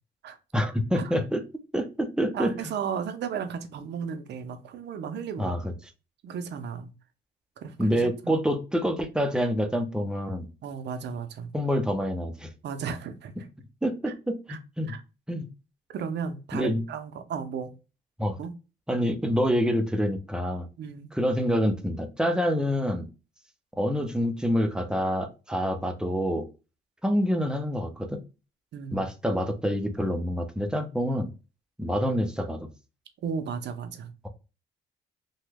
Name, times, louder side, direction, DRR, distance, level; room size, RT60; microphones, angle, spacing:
voice 1, 0.5-1.4 1.7-2.5 5.4-5.7 7.8-10.5 11.5-12.5 13.8-14.9 15.3-15.5 16.5-16.8 18.2-18.4 18.9-20.7 21.1-23.1 23.8-26.5 27.0-28.2 28.9-31.3 31.8-32.7, equal, 5° right, 0.6 m, -27 dB
voice 2, 2.3-5.6 6.2-6.9 7.6-8.3 10.6-11.5 12.6-13.3 14.0-14.1 14.5-14.6 14.9-15.0 15.9-17.7 18.4-18.5 20.8-21.1 28.7-29.0 33.2-34.1, right 7 dB, 60° right, 0.6 m, -34 dB
3.0 x 2.2 x 3.3 m
cardioid pair, 90°, 20 cm